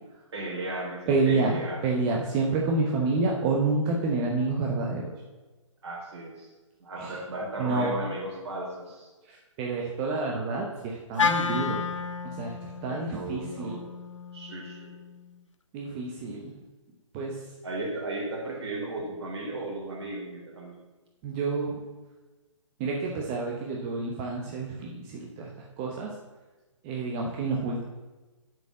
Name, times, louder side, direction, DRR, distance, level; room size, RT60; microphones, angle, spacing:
voice 1, 0.3-1.9 5.8-6.5 6.8-9.1 12.9-13.8 14.3-15.0 17.6-20.8, right 2 dB, 55° right, -2 dB, 3.3 m, -35 dB
voice 2, 1.1-5.0 7.0-7.2 7.6-7.9 9.3-11.9 12.2-13.7 15.7-16.5 17.1-17.4 21.2-21.8 22.8-25.5 25.8-26.1 26.8-27.8, right 3 dB, 20° right, -1 dB, 0.9 m, -28 dB
Wind instrument woodwind instrument, 11.2-15.4, left 5 dB, 70° left, 0.7 m, -32 dB
7.6 x 5.3 x 7.4 m, 1.2 s
figure-of-eight pair, 135°, 16 cm